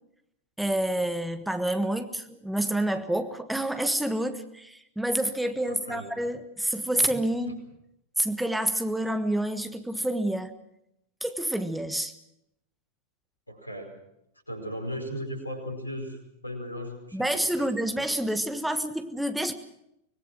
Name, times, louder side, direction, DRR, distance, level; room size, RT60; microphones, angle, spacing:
voice 1, 0.6-7.6 8.2-10.5 11.2-12.1 17.1-19.5, right 1 dB, 5° right, 9 dB, 1.4 m, -28 dB
voice 2, 5.7-6.1 7.5-7.6 13.5-13.9 14.5-17.7, equal, 85° left, 5 dB, 5.0 m, -37 dB
25.0 x 20.5 x 6.2 m, 0.79 s
figure-of-eight pair, 90°, 0 cm